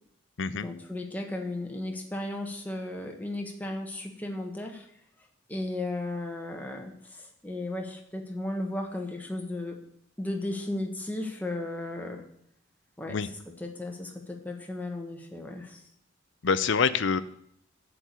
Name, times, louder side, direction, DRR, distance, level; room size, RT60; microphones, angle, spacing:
voice 1, 0.5-4.9 5.5-9.8 10.2-12.2 13.0-13.3 13.6-15.9, left 1 dB, 10° left, 1 dB, 1.2 m, -35 dB
voice 2, 16.4-17.2, left 5 dB, 60° left, 14 dB, 0.6 m, -25 dB
11.0 x 4.7 x 8.2 m, 0.71 s
head